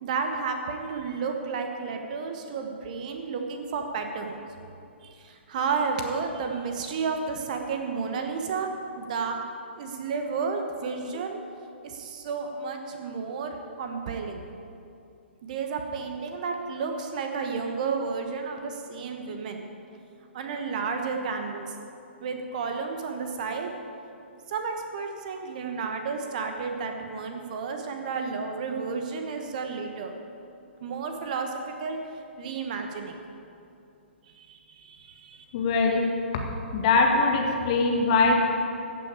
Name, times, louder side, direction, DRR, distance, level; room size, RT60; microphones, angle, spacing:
voice 1, 0.0-4.4 5.0-9.4 9.8-11.4 11.8-14.4 15.4-19.6 20.3-21.7 22.2-23.7 24.5-30.1 30.8-31.5 31.8-32.0 32.4-33.2 34.3-35.4, right 5 dB, 40° right, 4 dB, 1.2 m, -32 dB
voice 2, 35.5-36.1 36.7-38.4, left 3 dB, 35° left, 1 dB, 1.8 m, -22 dB
14.5 x 6.1 x 8.6 m, 2.6 s
figure-of-eight pair, 125°, 7 cm